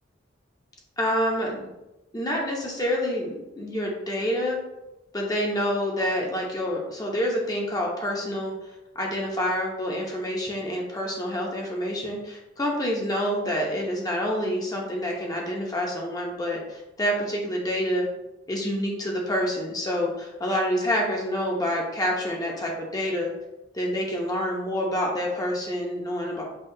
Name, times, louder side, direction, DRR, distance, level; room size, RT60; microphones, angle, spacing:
voice 1, 1.0-1.7 2.1-4.6 5.1-18.1 18.5-23.3 23.7-26.4, equal, 20° left, -1 dB, 0.6 m, -27 dB
5.4 x 2.2 x 2.6 m, 0.94 s
head